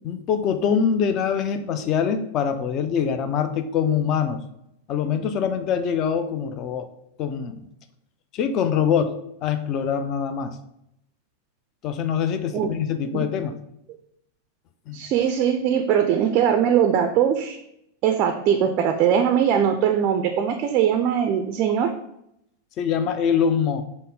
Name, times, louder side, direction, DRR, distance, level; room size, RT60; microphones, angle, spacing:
voice 1, 0.0-4.4 4.9-6.9 7.2-7.6 8.3-10.6 11.8-13.6 14.9-15.0 22.8-23.8, left 7 dB, 35° left, 9 dB, 0.4 m, -24 dB
voice 2, 14.9-17.6 18.0-21.9, right 8 dB, 40° right, 6 dB, 0.3 m, -21 dB
5.3 x 2.0 x 3.7 m, 0.79 s
figure-of-eight pair, 90°, 0 cm